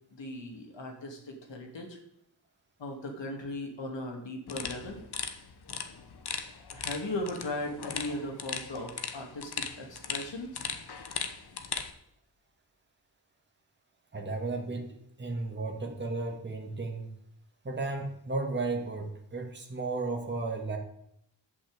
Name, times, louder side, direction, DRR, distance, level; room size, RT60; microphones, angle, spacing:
voice 1, 0.1-2.0 2.8-5.0 6.7-10.7, left 1 dB, 80° left, 2 dB, 2.7 m, -38 dB
sound 1, 4.5-11.9, left 6 dB, 65° left, 1.1 m, -38 dB
voice 2, 14.1-17.1 17.6-20.8, right 3 dB, 25° right, 1 dB, 1.8 m, -34 dB
11.0 x 5.8 x 8.2 m, 0.76 s
wide cardioid pair, 160°, 43 cm